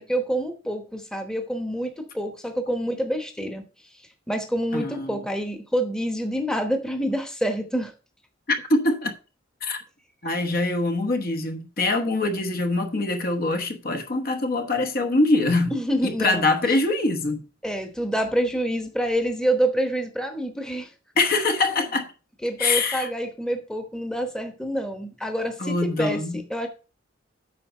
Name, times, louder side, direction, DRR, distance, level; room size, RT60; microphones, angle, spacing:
voice 1, 0.0-3.6 4.3-7.9 15.7-16.4 17.6-20.9 22.4-26.7, right 1 dB, 5° left, 0.9 m, -27 dB
voice 2, 4.7-5.2 8.5-9.1 9.6-9.8 10.2-15.7 16.0-17.4 21.2-22.1 22.6-23.1 25.6-26.4, left 2 dB, 50° left, 1.0 m, -24 dB
8.5 x 5.1 x 4.3 m
head